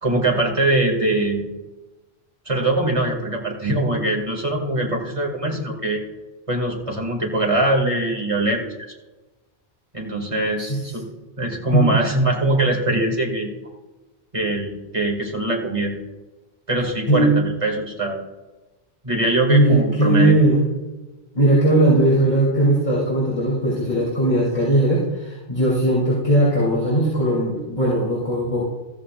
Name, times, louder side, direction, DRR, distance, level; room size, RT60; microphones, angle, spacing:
voice 1, 0.0-1.4 2.5-6.0 6.5-8.6 9.9-11.1 11.4-13.5 14.3-15.9 16.7-18.2 19.0-20.4, right 2 dB, 30° right, 0 dB, 2.4 m, -22 dB
voice 2, 19.5-20.6 21.3-28.6, right 1 dB, 40° left, -7 dB, 3.5 m, -18 dB
14.0 x 14.0 x 2.5 m, 1.1 s
omnidirectional pair, 1.1 m